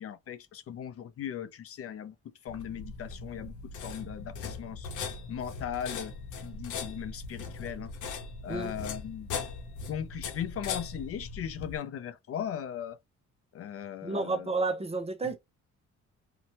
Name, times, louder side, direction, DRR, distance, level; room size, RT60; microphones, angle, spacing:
voice 1, 0.0-4.9 5.3-7.9 8.4-9.3 9.9-13.0 13.5-14.5 15.2-15.4, left 9 dB, 50° left, 0.4 m, -38 dB
sound 1, 2.5-11.8, left 4 dB, 75° left, 0.8 m, -39 dB
voice 2, 14.0-15.4, right 3 dB, 20° right, 0.6 m, -31 dB
2.7 x 2.2 x 2.9 m
cardioid pair, 90°, 30 cm